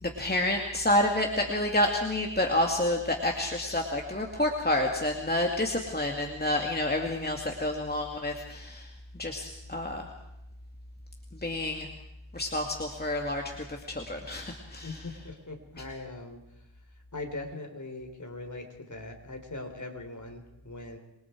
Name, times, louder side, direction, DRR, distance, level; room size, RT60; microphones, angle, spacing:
voice 1, 0.0-8.9 9.2-10.1 11.3-11.9 12.3-13.4 13.7-15.0, left 1 dB, 20° left, 2 dB, 2.6 m, -29 dB
voice 2, 14.8-16.4 17.1-21.0, left 2 dB, 35° left, 4 dB, 4.5 m, -40 dB
27.5 x 23.0 x 4.8 m, 0.89 s
cardioid pair, 65°, 49 cm